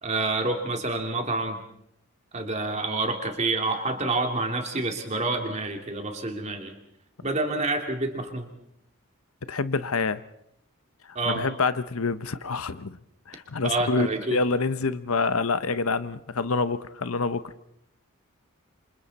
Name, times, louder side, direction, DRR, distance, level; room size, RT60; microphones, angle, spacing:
voice 1, 0.0-1.6 2.3-6.7 7.2-8.5 11.1-11.5 13.6-14.4, right 2 dB, 30° right, 3 dB, 2.8 m, -28 dB
voice 2, 9.5-10.2 11.3-13.0 13.3-17.4, left 4 dB, 80° left, 13 dB, 0.9 m, -27 dB
28.0 x 26.5 x 4.2 m, 0.75 s
head